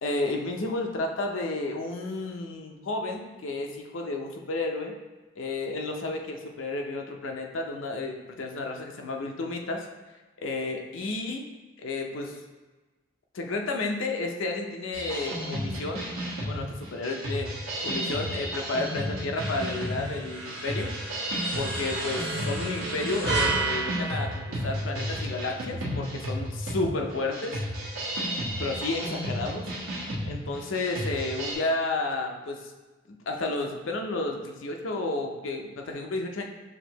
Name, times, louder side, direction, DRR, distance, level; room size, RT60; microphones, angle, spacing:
voice 1, 0.0-4.9 5.4-9.9 10.4-11.5 11.8-12.4 13.3-16.0 16.5-17.5 17.8-20.9 21.5-27.6 28.6-29.7 30.2-32.7 33.1-36.4, left 2 dB, 70° left, 2 dB, 0.5 m, -32 dB
sound 1, 14.9-31.5, equal, 90° right, 1.1 m, -33 dB
sound 2, 19.3-25.1, right 3 dB, 50° right, 1.3 m, -33 dB
6.2 x 2.7 x 2.9 m, 1.2 s
head